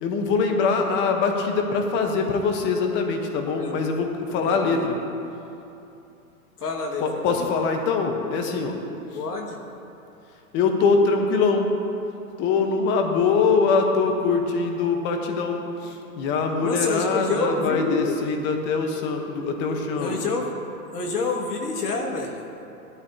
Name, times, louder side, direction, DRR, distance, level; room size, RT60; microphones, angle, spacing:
voice 1, 0.0-5.0 7.0-8.8 9.1-9.2 10.5-11.7 12.4-20.2, left 4 dB, 25° left, 4 dB, 1.1 m, -23 dB
voice 2, 4.5-4.8 6.6-7.0 7.3-7.5 9.1-9.6 16.6-18.2 20.0-20.6 20.9-22.4, left 3 dB, 85° left, 1 dB, 2.1 m, -27 dB
16.5 x 12.5 x 2.8 m, 2.8 s
hypercardioid pair, 145°, 45 cm